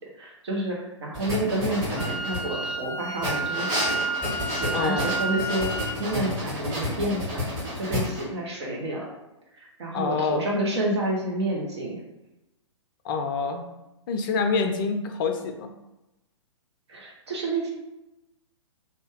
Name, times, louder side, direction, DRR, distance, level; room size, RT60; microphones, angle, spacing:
voice 1, 0.2-5.7 6.0-9.1 9.5-12.0 16.9-17.7, right 1 dB, 60° right, -2 dB, 0.9 m, -29 dB
sound 1, 1.1-2.7 3.2-8.2, left 1 dB, 25° right, 1.5 m, -30 dB
Wind instrument woodwind instrument, 2.0-6.0, right 2 dB, ahead, 0.6 m, -31 dB
voice 2, 4.7-5.1 9.9-10.4 13.0-13.6 14.1-15.7, left 4 dB, 45° left, 5 dB, 0.4 m, -26 dB
2.7 x 2.2 x 3.4 m, 0.95 s
figure-of-eight pair, 115°, 16 cm